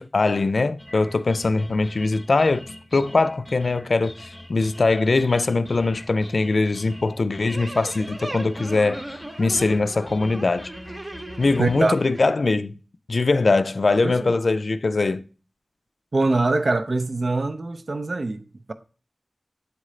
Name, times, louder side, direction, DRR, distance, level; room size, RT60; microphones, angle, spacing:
voice 1, 0.0-2.6 2.9-10.7 11.4-12.7 13.1-15.3, left 3 dB, 70° left, 0.3 m, -22 dB
sound 1, 0.8-11.9, left 1 dB, 15° left, 0.7 m, -43 dB
sound 2, 7.5-12.3, right 1 dB, 35° right, 0.8 m, -38 dB
voice 2, 11.6-11.9 14.0-14.2 16.1-18.7, right 2 dB, 60° right, 0.5 m, -23 dB
8.2 x 3.7 x 3.1 m
wide cardioid pair, 80°, 0 cm